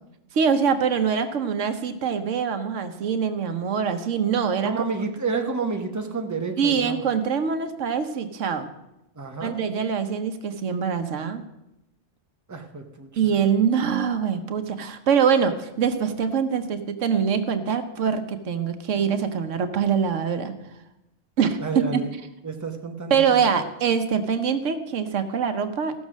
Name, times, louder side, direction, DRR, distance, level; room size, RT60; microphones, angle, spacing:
voice 1, 0.3-4.7 6.6-8.7 9.4-11.4 13.2-20.5 21.4-22.0 23.1-25.9, right 7 dB, 90° right, 9 dB, 1.2 m, -24 dB
voice 2, 4.6-7.0 9.2-9.6 12.5-13.2 21.6-22.1 22.4-23.4, right 4 dB, 15° right, 4 dB, 1.0 m, -30 dB
15.0 x 6.3 x 6.1 m, 0.91 s
omnidirectional pair, 1.2 m